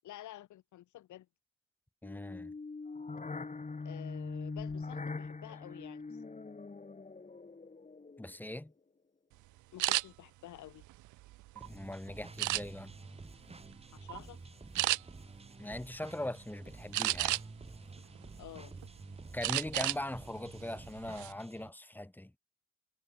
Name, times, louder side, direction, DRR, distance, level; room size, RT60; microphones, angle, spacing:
voice 1, 0.0-1.3 3.8-6.2 9.7-10.8 13.9-14.4 18.4-18.7 19.7-19.9, left 13 dB, 75° left, 1.7 m, -50 dB
sound 1, 2.0-8.4, left 4 dB, 25° left, 4.0 m, -42 dB
voice 2, 2.0-2.5 8.2-8.7 11.6-12.9 15.6-17.4 19.3-22.3, left 1 dB, 5° left, 1.8 m, -41 dB
sound 2, 9.8-10.0 10.7-11.7 12.4-13.0 13.5-13.7 14.1-14.3 14.8-15.0 16.9-17.6 18.2-18.9 19.4-20.0 20.4-20.6 21.0-21.3, right 18 dB, 75° right, 0.5 m, -32 dB
sound 3, 11.6-21.7, right 3 dB, 20° right, 4.9 m, -50 dB
cardioid pair, 90°, 30 cm